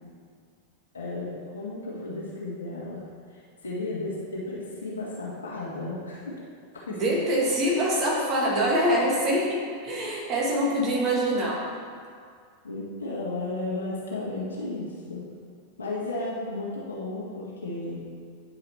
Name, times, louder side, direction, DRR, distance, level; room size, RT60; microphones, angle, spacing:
voice 1, 0.9-3.0 3.3-6.4 6.7-7.0 12.6-15.2 15.8-18.0, left 2 dB, 70° left, -6 dB, 1.9 m, -34 dB
voice 2, 6.9-11.6, equal, 30° right, -3 dB, 1.9 m, -24 dB
9.8 x 4.9 x 4.5 m, 2.1 s
figure-of-eight pair, 90°, 0 cm